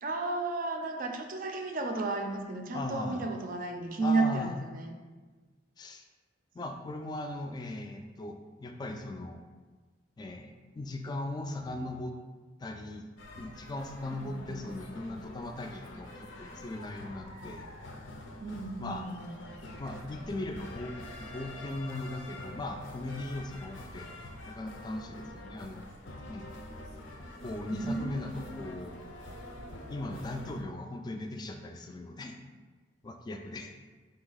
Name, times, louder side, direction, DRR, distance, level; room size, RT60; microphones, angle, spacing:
voice 1, 0.0-4.9 14.2-14.6 18.4-19.3 27.7-28.7, right 3 dB, 50° right, 3 dB, 0.4 m, -33 dB
voice 2, 2.7-3.3 4.0-4.6 5.8-6.0 6.5-9.4 10.2-12.1 12.6-13.1 13.4-17.7 18.8-19.0 19.8-20.9 21.2-24.1 24.5-25.8 26.3-26.5 27.4-29.0 29.9-32.4 33.0-33.7, left 2 dB, 25° left, 5 dB, 0.3 m, -38 dB
sound 1, 13.2-30.6, left 1 dB, 85° left, 0.6 m, -46 dB
4.3 x 2.6 x 3.9 m, 1.3 s
head